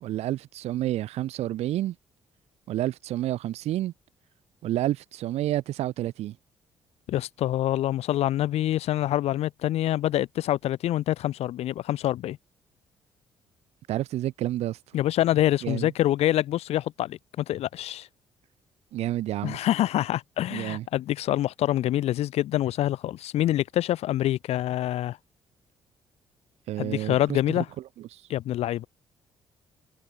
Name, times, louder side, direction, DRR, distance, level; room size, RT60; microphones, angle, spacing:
voice 1, 0.0-1.9 2.7-3.9 4.6-6.3 13.9-14.8 15.6-15.9 18.9-19.6 20.5-20.8 26.7-27.4 28.1-28.2, right 14 dB, 60° right, 1.0 m, -29 dB
voice 2, 7.1-12.4 14.9-18.1 19.4-25.2 26.8-27.7 28.3-28.9, left 13 dB, 60° left, 0.8 m, -26 dB
figure-of-eight pair, 45°, 12 cm